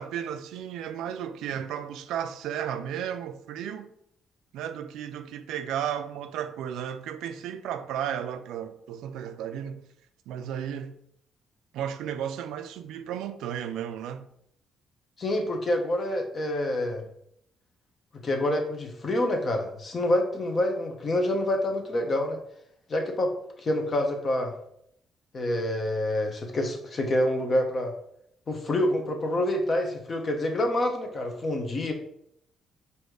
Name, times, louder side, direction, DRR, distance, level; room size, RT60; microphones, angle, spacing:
voice 1, 0.0-3.9 4.5-9.8 10.3-11.0 11.7-14.3, right 9 dB, 90° right, 0.3 m, -34 dB
voice 2, 15.2-17.0 18.2-22.4 22.9-24.5 25.3-27.9 28.5-31.9, left 1 dB, 40° left, 0.9 m, -27 dB
4.2 x 2.7 x 4.6 m
cardioid pair, 90°, 0 cm